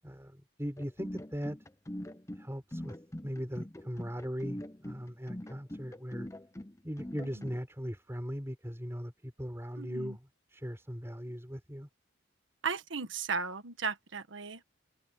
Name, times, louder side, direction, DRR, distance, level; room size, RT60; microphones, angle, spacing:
voice 1, 0.0-1.6 2.3-2.9 3.2-6.3 6.8-11.9, equal, 15° right, 6.6 m, -39 dB
sound 1, 0.8-7.6, left 1 dB, 15° left, 0.7 m, -42 dB
voice 2, 9.8-10.2 12.6-14.6, right 5 dB, 80° right, 1.5 m, -36 dB
head